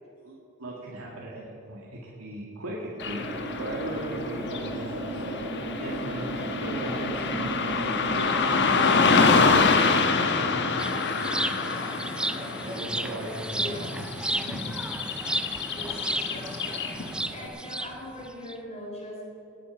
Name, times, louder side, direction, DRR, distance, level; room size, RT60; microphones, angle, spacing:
voice 1, 0.2-3.3 3.5-5.4 5.8-8.5 9.1-10.3 10.6-14.0 14.3-14.6, right 1 dB, 80° right, -4 dB, 1.9 m, -38 dB
Car passing by / Traffic noise roadway noise, 3.0-17.3, left 4 dB, 55° left, 1.2 m, -26 dB
sound 1, 3.0-9.6, right 1 dB, 25° right, 3.4 m, -34 dB
sound 2, 10.8-18.5, right 1 dB, 5° right, 0.3 m, -33 dB
voice 2, 13.4-13.9 15.7-19.2, left 1 dB, 30° left, -2 dB, 3.5 m, -41 dB
18.5 x 8.5 x 5.9 m, 3.0 s
head